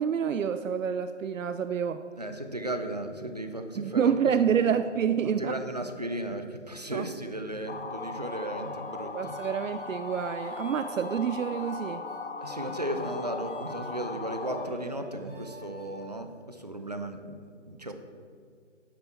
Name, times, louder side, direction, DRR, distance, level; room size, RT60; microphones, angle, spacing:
voice 1, 0.0-2.0 3.8-5.5 6.9-7.1 9.1-12.1, right 7 dB, 90° right, 10 dB, 0.5 m, -28 dB
voice 2, 2.2-4.3 5.2-9.4 12.4-17.9, right 1 dB, 35° right, 6 dB, 0.5 m, -35 dB
sound 1, 7.7-14.7, left 4 dB, 55° left, 0.9 m, -38 dB
sound 2, 7.8-16.2, equal, 5° left, 1.0 m, -47 dB
9.5 x 8.1 x 4.3 m, 2.2 s
figure-of-eight pair, 170°, 38 cm